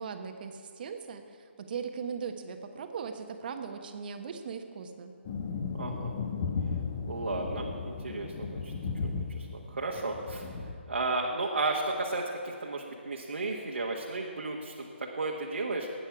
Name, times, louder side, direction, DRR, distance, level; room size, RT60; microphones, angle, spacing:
voice 1, 0.0-5.1, right 6 dB, 45° right, 6 dB, 1.1 m, -39 dB
sound 1, 5.3-10.7, left 5 dB, 40° left, 1.3 m, -35 dB
voice 2, 5.7-6.1 7.1-8.7 9.1-10.5 10.9-14.9 15.1-15.9, right 3 dB, 80° right, -2 dB, 1.5 m, -33 dB
19.0 x 8.8 x 4.8 m, 2.3 s
figure-of-eight pair, 145°, 7 cm